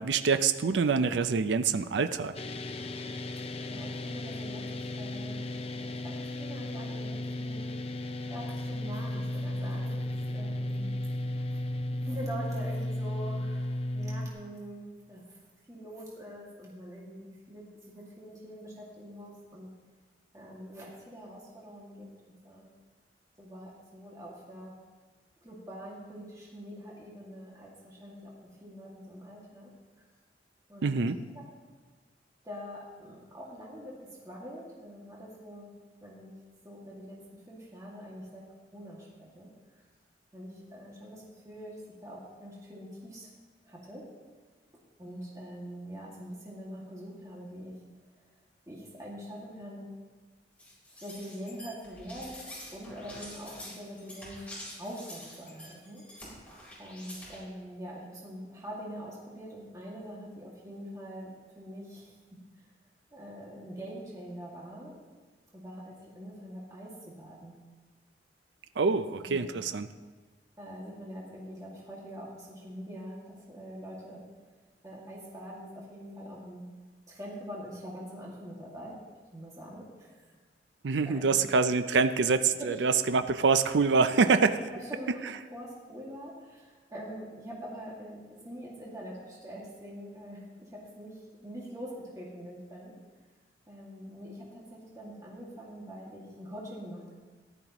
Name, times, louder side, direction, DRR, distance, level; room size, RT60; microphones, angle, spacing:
voice 1, 0.0-2.4 30.8-31.2 68.8-69.9 80.8-84.6, right 4 dB, 85° right, 11 dB, 0.5 m, -25 dB
sound 1, 2.3-14.3, left 1 dB, 35° left, 0.6 m, -35 dB
voice 2, 3.7-4.7 5.0-7.7 8.3-10.9 11.4-11.5 12.0-15.2 15.7-19.7 20.3-22.1 22.4-22.7 23.4-24.7 25.4-28.3 28.6-29.7 30.7-31.0 32.4-33.9 34.2-35.7 36.0-36.4 36.6-38.4 38.7-39.5 40.3-41.7 42.0-43.3 43.7-44.0 45.0-47.7 48.7-49.9 51.0-54.4 54.8-56.0 56.8-62.1 63.1-64.9 65.5-66.9 67.2-67.5 68.9-69.5 70.6-74.2 74.8-76.6 77.1-79.0 79.3-80.2 81.1-81.4 82.6-82.8 84.9-85.2 85.5-90.4 90.7-91.2 91.4-91.9 92.2-92.9 93.7-97.1, equal, 20° right, -5 dB, 2.1 m, -44 dB
sound 2, 50.6-57.4, left 1 dB, 10° left, 4.0 m, -47 dB
14.5 x 12.0 x 3.0 m, 1.4 s
head